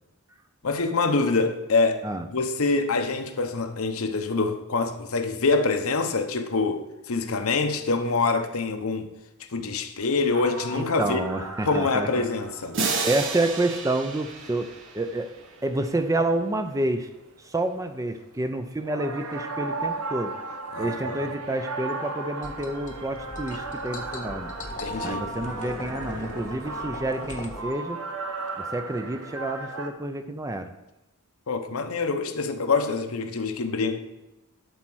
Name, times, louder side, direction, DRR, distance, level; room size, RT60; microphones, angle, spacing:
voice 1, 0.6-2.1 2.3-9.1 9.5-11.2 11.7-12.8 20.7-21.3 24.8-25.2 31.5-34.0, left 3 dB, 70° left, 0.9 m, -25 dB
sound 1, 10.3-17.0 17.5-17.9 18.2-29.9, right 3 dB, 80° right, 1.0 m, -36 dB
voice 2, 10.7-12.3 13.0-15.3 15.6-17.1 17.4-20.3 20.8-24.5 25.0-28.0 28.6-30.7, right 2 dB, 15° right, 0.5 m, -29 dB
sound 2, 12.7-15.6, right 4 dB, 60° right, 1.2 m, -31 dB
sound 3, 22.4-27.6, left 2 dB, 35° left, 0.9 m, -39 dB
11.0 x 4.4 x 6.2 m
head